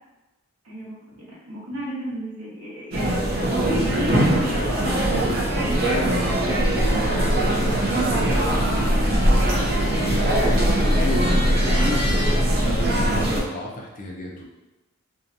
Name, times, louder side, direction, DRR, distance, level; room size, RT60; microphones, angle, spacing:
voice 1, 1.3-5.2, equal, 85° right, -6 dB, 1.0 m, -33 dB
sound 1, 2.9-13.4, right 1 dB, 45° right, 0.5 m, -21 dB
voice 2, 6.7-10.7 11.1-12.1 12.6-14.4, equal, 35° left, -2 dB, 0.4 m, -35 dB
2.7 x 2.2 x 2.5 m, 1.0 s
head